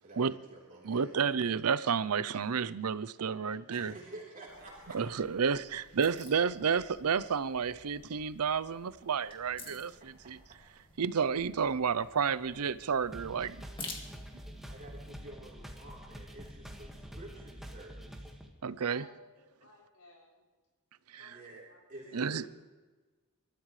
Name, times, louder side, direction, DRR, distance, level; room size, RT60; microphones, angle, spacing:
voice 1, 0.0-1.2 3.7-5.0 10.2-10.3 14.7-18.3 21.2-21.6 21.9-22.5, right 2 dB, 40° right, 3.8 m, -50 dB
voice 2, 0.8-3.9 4.9-10.4 11.0-13.6 18.6-19.0 21.1-21.2 22.1-22.4, right 6 dB, 85° right, 0.6 m, -31 dB
voice 3, 3.5-4.1 4.5-5.1 18.9-19.2 19.6-20.4 21.2-22.2, left 2 dB, 70° left, 6.7 m, -58 dB
sound 1, 4.5-15.0, left 3 dB, 25° left, 2.2 m, -51 dB
sound 2, 13.1-18.5, equal, ahead, 1.8 m, -47 dB
28.0 x 13.5 x 3.3 m
head